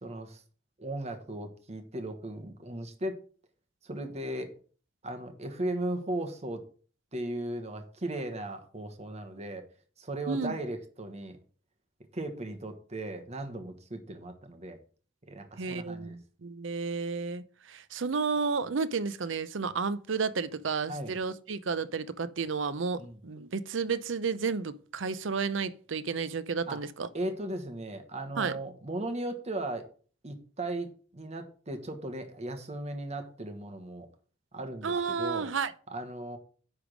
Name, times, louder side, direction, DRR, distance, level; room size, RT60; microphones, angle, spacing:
voice 1, 0.0-0.4 0.8-3.2 3.8-4.5 5.0-6.6 7.1-9.6 10.0-11.4 12.1-14.8 15.3-16.2 20.9-21.2 23.0-23.2 26.7-26.8 27.1-29.9 30.2-30.9 31.1-34.1 34.5-35.5 35.9-36.4, right 1 dB, 35° right, 1.2 m, -37 dB
voice 2, 15.6-27.1 28.4-28.6 34.8-35.7, right 5 dB, 70° right, 0.6 m, -32 dB
9.9 x 3.6 x 6.1 m
head